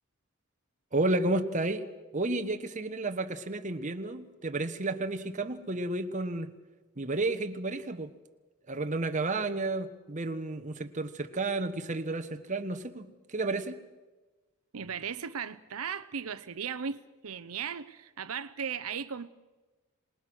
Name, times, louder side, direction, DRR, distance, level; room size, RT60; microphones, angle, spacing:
voice 1, 0.9-1.8 2.1-6.5 7.0-8.1 8.7-13.8, right 2 dB, 35° right, 1.2 m, -32 dB
voice 2, 14.7-19.3, right 7 dB, 85° right, 0.7 m, -37 dB
26.5 x 19.5 x 6.3 m
head